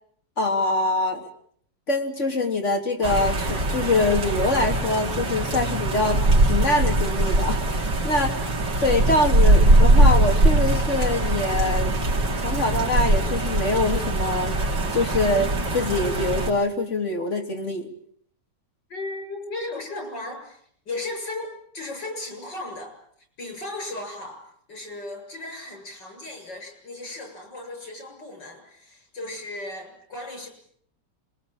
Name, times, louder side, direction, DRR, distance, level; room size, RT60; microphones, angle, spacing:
voice 1, 0.4-1.3 1.9-8.3 8.8-11.9 12.4-14.6 14.9-17.9, left 2 dB, 40° left, 3 dB, 3.7 m, -24 dB
sound 1, 3.0-16.5, right 2 dB, 85° right, 3.6 m, -21 dB
voice 2, 18.9-20.6 20.9-22.9 23.4-24.4 24.7-30.5, left 2 dB, 85° left, 5 dB, 7.8 m, -36 dB
26.5 x 22.5 x 9.0 m, 0.66 s
omnidirectional pair, 1.9 m